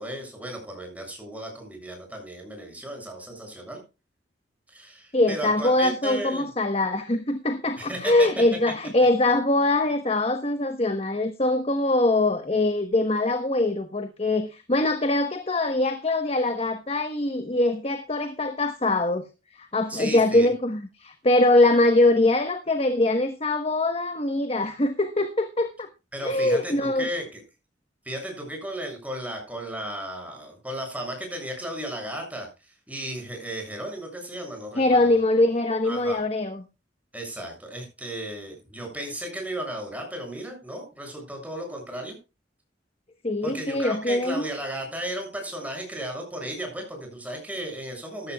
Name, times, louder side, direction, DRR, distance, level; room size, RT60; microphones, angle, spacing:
voice 1, 0.0-3.8 4.7-6.5 7.8-8.4 19.9-20.5 26.1-27.4 28.1-35.2 35.8-36.2 37.1-42.2 43.4-48.3, right 1 dB, 10° right, 2 dB, 7.0 m, -35 dB
voice 2, 5.1-19.2 19.6-25.9 26.2-27.1 34.8-36.6 43.2-44.5, left 2 dB, 35° left, 8 dB, 1.2 m, -23 dB
15.0 x 13.0 x 2.3 m, 0.29 s
head